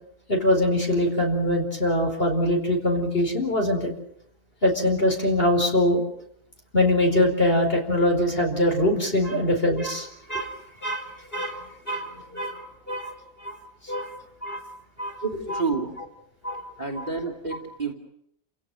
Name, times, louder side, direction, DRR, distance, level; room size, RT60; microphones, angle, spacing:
voice 1, 0.3-3.9 4.6-6.0 6.7-10.5 10.8-13.1 13.4-13.6 13.8-14.1 14.4-14.6 15.0-15.2 15.5-15.6 16.4-16.6 17.0-17.1, left 1 dB, 35° left, 3 dB, 4.7 m, -23 dB
voice 2, 15.2-15.9 16.8-17.9, right 4 dB, 25° right, 5 dB, 3.0 m, -29 dB
30.0 x 16.5 x 9.0 m, 0.73 s
omnidirectional pair, 1.8 m